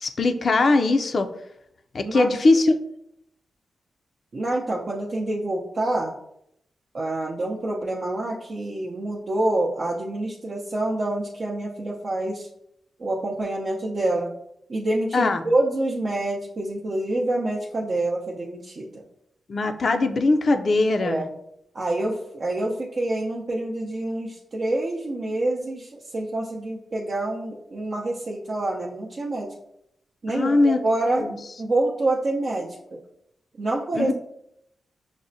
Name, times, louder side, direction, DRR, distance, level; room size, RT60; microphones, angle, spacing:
voice 1, 0.0-1.3 1.9-2.7 15.1-15.4 19.5-21.2 30.3-30.8 31.2-31.4 33.9-34.1, left 2 dB, 55° left, 8 dB, 0.4 m, -20 dB
voice 2, 4.3-6.1 6.9-12.5 13.0-14.3 14.7-19.0 21.0-21.3 21.7-29.5 30.2-31.3 31.6-33.0 33.6-34.1, right 2 dB, 50° right, -4 dB, 0.5 m, -27 dB
6.0 x 2.1 x 2.6 m, 0.76 s
cardioid pair, 65°, 0 cm